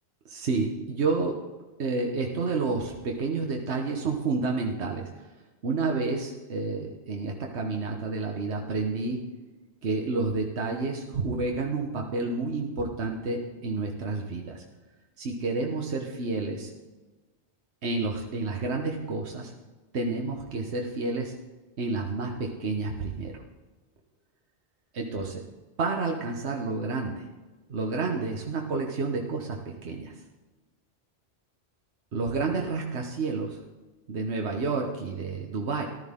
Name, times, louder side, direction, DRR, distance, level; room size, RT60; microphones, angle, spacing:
voice 1, 0.3-1.4 1.8-5.1 5.6-9.2 9.8-14.6 15.2-16.7 17.8-19.5 19.9-21.3 21.8-23.4 24.9-25.4 25.8-27.2 27.7-30.1 32.1-33.6 34.1-35.8, right 3 dB, 70° right, 1 dB, 1.4 m, -30 dB
14.5 x 12.5 x 3.7 m, 1.2 s
omnidirectional pair, 1.2 m